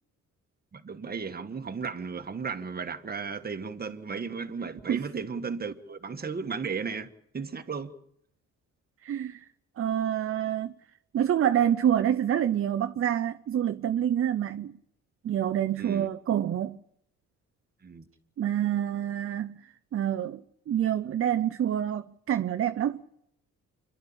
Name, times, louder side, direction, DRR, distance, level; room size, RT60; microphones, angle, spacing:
voice 1, 0.7-7.1 7.3-7.9 15.8-16.1 17.8-18.1, right 5 dB, 30° right, 1.5 m, -35 dB
voice 2, 9.0-9.4 9.8-10.7 11.1-14.7 15.2-16.8 18.4-19.6 19.9-20.4 20.7-23.0, right 10 dB, 45° right, 0.7 m, -27 dB
26.5 x 11.5 x 8.8 m
cardioid pair, 90°, 30 cm